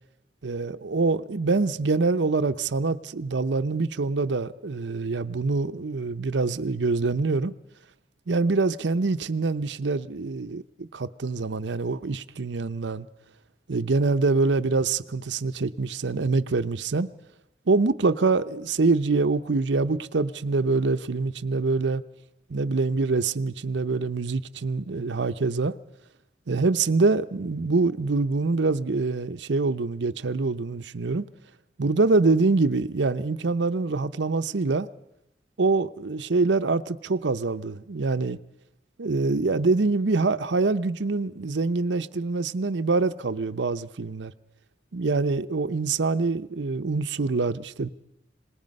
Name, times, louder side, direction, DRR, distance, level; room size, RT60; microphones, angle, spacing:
voice 1, 0.4-7.5 8.3-13.1 13.7-17.1 17.7-22.0 22.5-25.8 26.5-31.3 31.8-34.9 35.6-38.4 39.0-44.3 44.9-47.9, right 3 dB, 80° right, 0.7 m, -25 dB
26.0 x 20.0 x 5.4 m
head